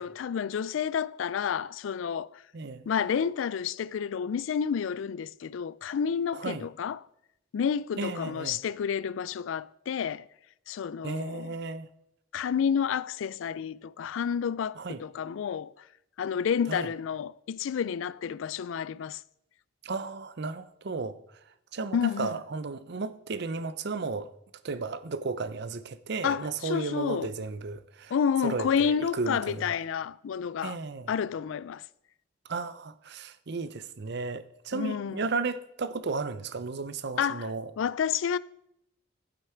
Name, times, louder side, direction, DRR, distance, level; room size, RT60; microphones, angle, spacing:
voice 1, 0.0-2.4 2.9-7.0 7.5-10.3 10.7-11.5 12.3-15.7 16.2-19.2 21.9-22.4 26.2-27.3 28.1-30.8 31.1-31.8 34.7-35.2 37.2-37.5 37.8-38.4, left 7 dB, 75° left, 0.3 m, -30 dB
voice 2, 2.5-2.9 6.3-6.7 8.0-8.6 11.0-11.9 14.8-15.0 16.7-16.9 19.8-21.2 21.7-24.3 24.6-28.1 28.4-29.7 30.6-31.1 32.5-37.7, right 4 dB, 60° right, 0.6 m, -34 dB
12.0 x 8.1 x 4.5 m
head